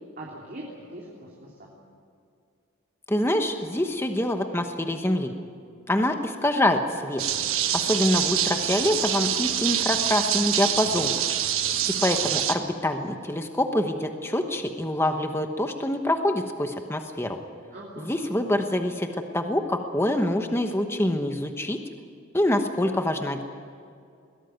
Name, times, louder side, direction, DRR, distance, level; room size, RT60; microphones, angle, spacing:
voice 1, 0.2-1.7 17.7-18.4, right 1 dB, 40° right, -4 dB, 3.4 m, -41 dB
voice 2, 3.1-5.3 5.9-7.2 7.7-11.2 12.0-17.4 18.0-21.8 22.3-23.4, left 1 dB, 10° left, 5 dB, 1.0 m, -25 dB
sound 1, 7.2-12.5, right 10 dB, 70° right, 1.4 m, -26 dB
21.5 x 17.5 x 9.3 m, 2.4 s
head